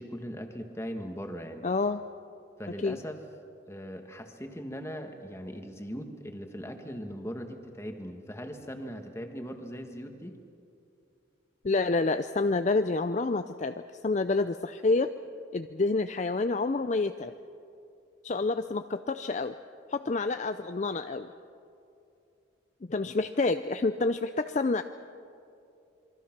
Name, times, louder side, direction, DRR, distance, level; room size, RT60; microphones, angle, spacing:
voice 1, 0.0-1.7 2.6-3.2 3.7-10.4, equal, 15° left, 5 dB, 1.6 m, -39 dB
voice 2, 1.6-2.0 2.8-3.0 11.6-15.1 15.5-17.3 18.2-19.6 19.9-21.3 22.9-24.8, left 3 dB, 35° left, 9 dB, 0.5 m, -28 dB
27.5 x 23.0 x 6.0 m, 2.6 s
head